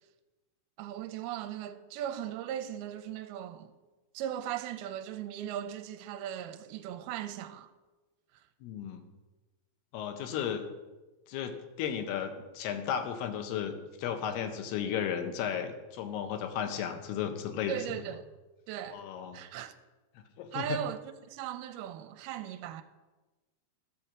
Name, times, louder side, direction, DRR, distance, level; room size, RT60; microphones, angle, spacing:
voice 1, 0.8-3.7 4.1-7.7 17.7-18.2 18.7-19.0 19.3-19.8 20.5-21.0 21.3-22.8, right 10 dB, 80° right, 2.4 m, -38 dB
voice 2, 8.6-9.1 9.9-10.7 11.3-17.8 18.9-19.4 20.2-20.8, left 8 dB, 80° left, 2.8 m, -34 dB
13.0 x 4.4 x 7.2 m
omnidirectional pair, 4.6 m